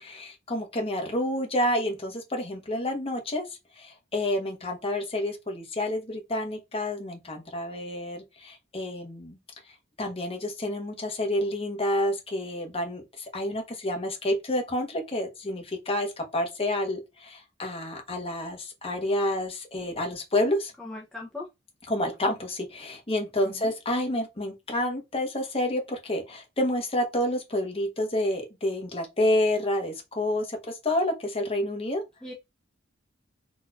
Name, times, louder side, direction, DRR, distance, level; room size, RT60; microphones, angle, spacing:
voice 1, 0.0-3.5 3.8-9.4 10.0-20.7 21.9-32.0, left 1 dB, 30° left, 1.1 m, -29 dB
voice 2, 20.8-21.5 23.4-23.7 32.2-32.3, left 2 dB, 5° left, 0.7 m, -39 dB
4.0 x 3.0 x 2.4 m
head